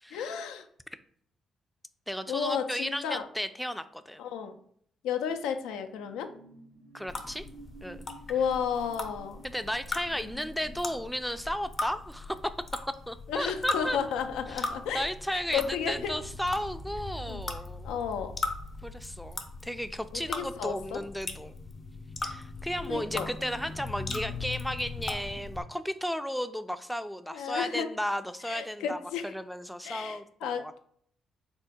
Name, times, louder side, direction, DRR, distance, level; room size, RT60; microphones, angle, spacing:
voice 1, 0.1-0.7 2.3-3.3 4.2-4.6 5.0-6.3 8.3-9.4 13.3-15.0 15.3-16.2 17.3-17.5 17.8-18.3 20.1-21.0 22.9-23.3 27.3-27.9 28.4-29.3 29.8-30.8, left 7 dB, 85° left, 7 dB, 0.4 m, -33 dB
voice 2, 2.1-4.2 6.9-7.5 7.8-8.0 9.4-12.5 13.1-14.0 14.5-14.7 14.9-17.9 18.8-21.5 22.2-29.0 29.2-30.8, equal, ahead, 10 dB, 0.4 m, -34 dB
sound 1, 5.2-14.2 14.6-14.8, right 2 dB, 75° right, 0.7 m, -54 dB
sound 2, 7.1-25.6, left 3 dB, 45° left, 0.6 m, -39 dB
3.6 x 2.1 x 4.2 m, 0.64 s
supercardioid pair, 55°, 0 cm